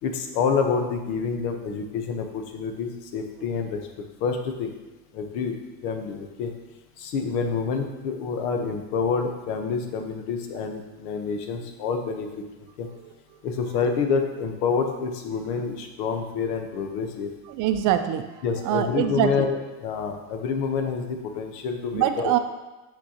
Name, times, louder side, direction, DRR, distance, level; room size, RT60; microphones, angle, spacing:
voice 1, 0.0-3.8 4.2-4.7 5.1-5.6 5.8-6.5 7.0-12.3 12.8-12.9 13.4-17.3 18.4-19.6 19.8-22.4, left 5 dB, 70° left, 5 dB, 1.1 m, -27 dB
voice 2, 17.5-19.5 21.9-22.4, right 11 dB, 45° right, 8 dB, 0.5 m, -24 dB
6.6 x 6.1 x 2.9 m, 1.1 s
supercardioid pair, 100°, 45 cm